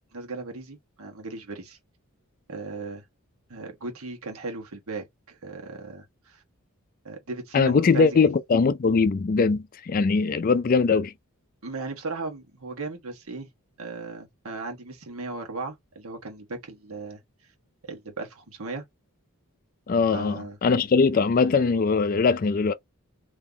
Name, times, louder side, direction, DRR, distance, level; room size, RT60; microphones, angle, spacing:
voice 1, 0.1-1.8 2.5-3.0 3.5-6.4 7.0-8.2 11.6-13.5 13.8-17.2 17.8-18.8 20.1-20.6, right 3 dB, 75° right, 1.3 m, -36 dB
voice 2, 7.5-11.1 19.9-22.7, left 4 dB, 40° left, 0.4 m, -21 dB
3.9 x 2.9 x 2.8 m
head